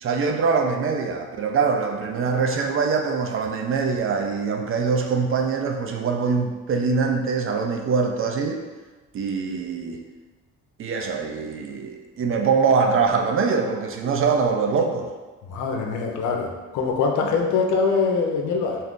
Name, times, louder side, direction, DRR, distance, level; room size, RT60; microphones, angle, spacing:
voice 1, 0.0-8.6 9.1-10.0 10.8-15.1 17.2-17.3, right 5 dB, 45° right, 4 dB, 0.4 m, -23 dB
voice 2, 15.5-18.8, left 5 dB, 80° left, 1 dB, 0.6 m, -23 dB
2.7 x 2.4 x 3.6 m, 1.3 s
cardioid pair, 90°, 30 cm